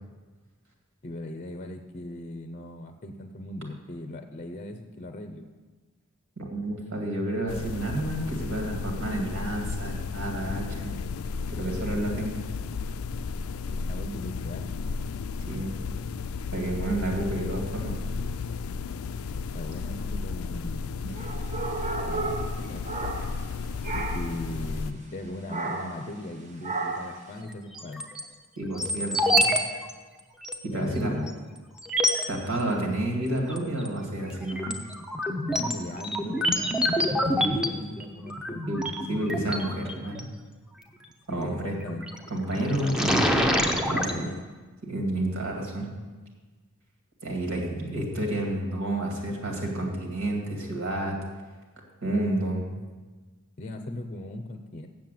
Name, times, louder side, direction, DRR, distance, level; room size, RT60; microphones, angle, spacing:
voice 1, 1.0-5.5 13.7-14.7 19.5-21.0 22.1-22.3 22.7-22.9 23.8-28.0 30.7-31.4 35.4-38.6 41.3-42.0 42.5-43.4 43.8-44.5 53.6-54.9, left 1 dB, 35° left, 6 dB, 0.6 m, -38 dB
voice 2, 6.4-11.0 11.5-12.5 15.5-15.7 16.5-18.0 28.6-29.5 30.6-31.1 32.3-34.8 37.4-37.5 38.7-40.3 41.3-41.8 42.3-43.3 43.8-44.3 44.9-45.9 47.2-51.2 52.0-52.7, right 1 dB, 70° right, 1 dB, 2.2 m, -30 dB
sound 1, 7.5-24.9, left 4 dB, 85° left, 0.4 m, -33 dB
sound 2, 21.1-23.5 23.8-24.4 25.5-26.0 26.6-27.2, right 3 dB, 35° right, 1.1 m, -33 dB
sound 3, 27.7-28.2 28.8-29.6 29.9-30.0 30.4-30.5 31.3-31.4 31.8-32.3 33.5-33.9 34.3-40.2 41.8-42.2 42.6-44.1, equal, 5° right, 0.7 m, -26 dB
7.5 x 7.4 x 7.6 m, 1.3 s
head